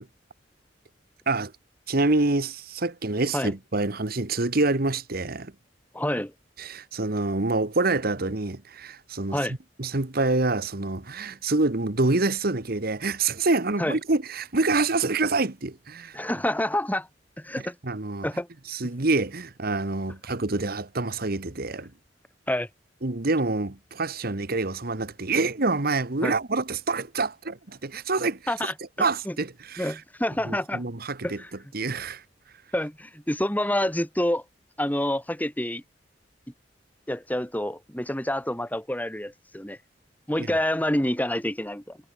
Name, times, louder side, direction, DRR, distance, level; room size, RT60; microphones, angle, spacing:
voice 1, 1.9-5.5 6.6-9.4 9.8-16.2 17.8-18.3 18.7-21.9 23.0-28.5 29.0-30.0 30.5-31.4 31.7-32.2 40.4-40.5, right 3 dB, 55° right, 1.5 m, -26 dB
voice 2, 5.9-6.3 9.3-9.5 13.8-14.0 16.1-17.1 17.4-17.7 18.2-18.5 22.5-22.7 26.2-26.4 28.5-28.7 29.2-29.3 29.8-30.8 31.2-31.5 32.7-34.4 34.8-35.8 37.1-39.8 40.3-42.0, left 1 dB, 10° left, 3.4 m, -27 dB
head